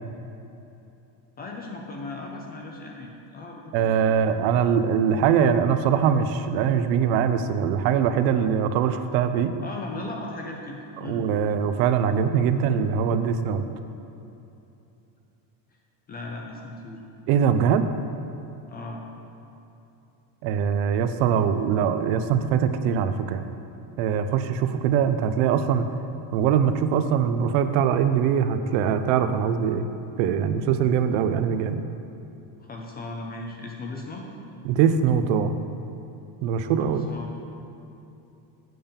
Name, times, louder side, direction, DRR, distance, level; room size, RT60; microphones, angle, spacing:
voice 1, 1.4-4.0 9.6-11.3 16.1-17.0 18.7-19.0 32.6-34.3 36.8-37.3, left 2 dB, 25° left, 0 dB, 0.3 m, -37 dB
voice 2, 3.7-9.5 11.0-13.6 17.3-17.9 20.4-23.4 24.0-25.9 26.3-29.9 30.2-31.8 34.6-35.5 36.4-37.1, right 7 dB, 80° right, 9 dB, 0.7 m, -22 dB
7.7 x 5.3 x 7.0 m, 2.8 s
cardioid pair, 165°, 48 cm